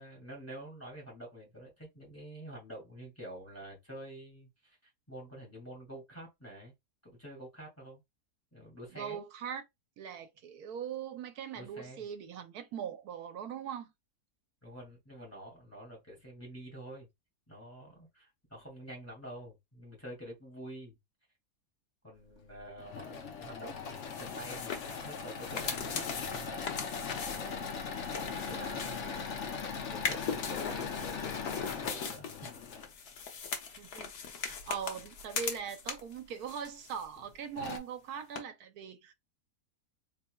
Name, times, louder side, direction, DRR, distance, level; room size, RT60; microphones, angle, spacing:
voice 1, 0.0-4.8 5.1-6.7 7.0-8.0 8.5-9.2 11.5-12.0 14.6-17.1 17.5-21.0 22.0-27.6 27.9-29.2 29.9-32.5, right 1 dB, 10° left, 2.1 m, -48 dB
voice 2, 8.9-9.6 10.0-13.9 33.7-39.1, right 7 dB, 75° right, 1.2 m, -41 dB
Engine / Mechanisms, 22.6-32.9 34.5-35.2 35.8-35.9 36.2-36.3 37.2-37.3 37.6-37.8, left 5 dB, 55° left, 1.0 m, -40 dB
sound 1, 24.0-29.5 29.9-36.2 36.5-37.3 37.6-37.7 38.4-38.5, left 6 dB, 80° left, 1.4 m, -40 dB
4.2 x 3.5 x 2.2 m
omnidirectional pair, 1.6 m